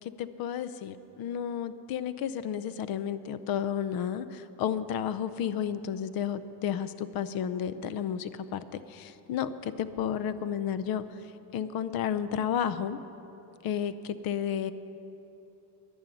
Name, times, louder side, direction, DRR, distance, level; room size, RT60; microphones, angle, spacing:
voice 1, 0.0-13.0 13.6-14.7, left 9 dB, 50° left, 14 dB, 0.6 m, -32 dB
11.5 x 11.0 x 9.2 m, 3.0 s
cardioid pair, 170°, 46 cm